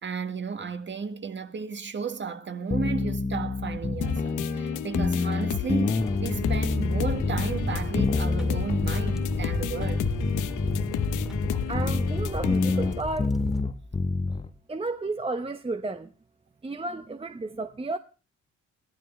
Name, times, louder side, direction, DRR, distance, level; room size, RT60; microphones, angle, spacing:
voice 1, 0.0-10.1, right 5 dB, 40° right, 1.7 m, -34 dB
sound 1, 2.7-14.5, left 3 dB, 20° left, 1.0 m, -27 dB
sound 2, 4.0-13.0, left 12 dB, 85° left, 1.0 m, -33 dB
sound 3, 5.9-13.6, right 1 dB, ahead, 2.2 m, -35 dB
voice 2, 11.7-13.3 14.7-16.1 16.6-18.0, right 2 dB, 20° right, 1.0 m, -32 dB
21.5 x 14.5 x 3.2 m
cardioid pair, 90°, 30 cm